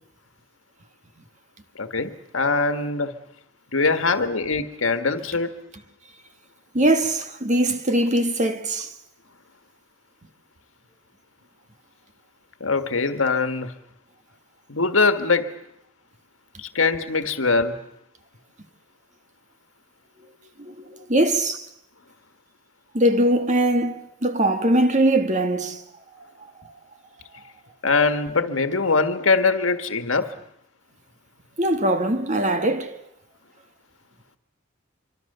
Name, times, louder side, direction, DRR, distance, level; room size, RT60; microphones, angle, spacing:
voice 1, 1.7-3.1 3.7-5.5 12.6-13.7 14.7-15.5 16.6-17.8 27.8-30.3, left 4 dB, 85° left, 1.6 m, -22 dB
voice 2, 6.7-8.9 20.6-21.7 22.9-25.8 26.6-26.7 31.6-33.0, right 1 dB, 40° right, 1.7 m, -21 dB
25.0 x 24.5 x 6.8 m
head